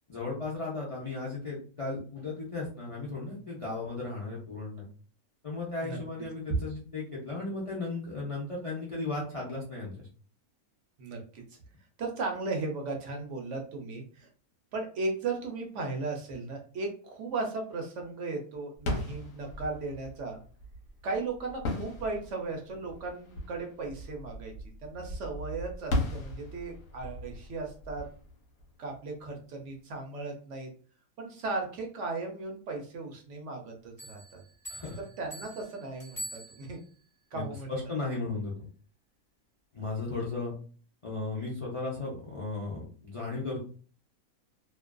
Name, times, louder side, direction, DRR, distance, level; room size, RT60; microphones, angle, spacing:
voice 1, 0.1-4.9 5.4-10.1 34.7-35.0 37.3-38.7 39.7-40.5 41.0-43.6, left 3 dB, 55° left, -5 dB, 0.3 m, -35 dB
voice 2, 11.0-11.4 12.0-14.3 14.7-20.4 21.0-24.5 24.8-28.0 28.8-30.7 31.2-34.4 35.2-36.8 37.3-37.7, right 3 dB, 65° right, 2 dB, 0.8 m, -36 dB
sound 1, 18.8-29.4, left 1 dB, 70° left, 1.1 m, -38 dB
sound 2, 34.0-37.0, right 1 dB, 10° right, 1.0 m, -44 dB
2.5 x 2.3 x 2.2 m, 0.41 s
omnidirectional pair, 1.5 m